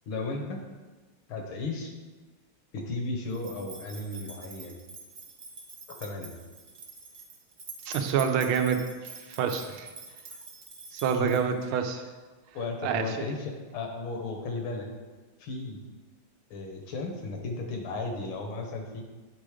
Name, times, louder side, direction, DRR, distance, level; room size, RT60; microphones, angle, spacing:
voice 1, 0.1-0.6 1.3-1.9 2.7-4.8 6.0-6.4 11.2-11.4 12.5-14.9 15.4-15.8 16.5-19.0, left 3 dB, 75° left, 3 dB, 1.7 m, -35 dB
sound 1, 3.3-11.7, right 3 dB, 50° right, 1.2 m, -46 dB
voice 2, 7.9-9.9 10.9-12.0 12.8-13.3, right 7 dB, 85° right, 6 dB, 1.5 m, -27 dB
9.0 x 3.8 x 4.9 m, 1.3 s
omnidirectional pair, 2.3 m